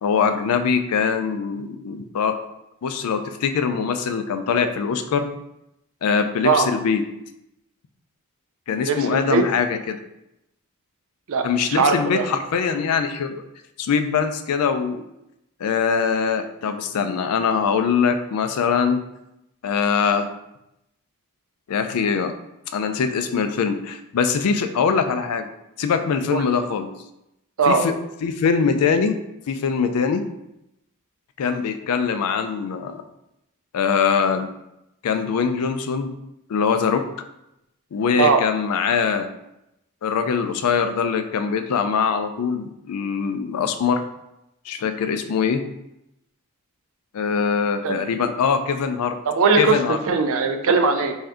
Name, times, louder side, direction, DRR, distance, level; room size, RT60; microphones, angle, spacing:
voice 1, 0.0-2.4 2.8-5.3 6.0-7.0 8.7-10.0 11.4-13.4 13.8-15.0 15.6-19.0 19.6-20.3 21.7-22.3 22.7-25.5 25.8-26.9 27.7-28.0 28.2-29.2 29.5-30.2 31.4-33.0 33.7-34.5 35.0-36.1 36.5-37.0 37.9-39.3 40.0-44.1 44.7-45.6 47.1-49.2 49.6-50.0, left 6 dB, 85° left, 8 dB, 0.4 m, -22 dB
voice 2, 8.8-9.4 11.3-12.3 26.3-26.5 27.6-27.8 38.2-38.4 47.8-47.9 49.3-51.1, right 4 dB, 65° right, 7 dB, 0.4 m, -20 dB
3.4 x 2.6 x 3.4 m, 0.85 s
head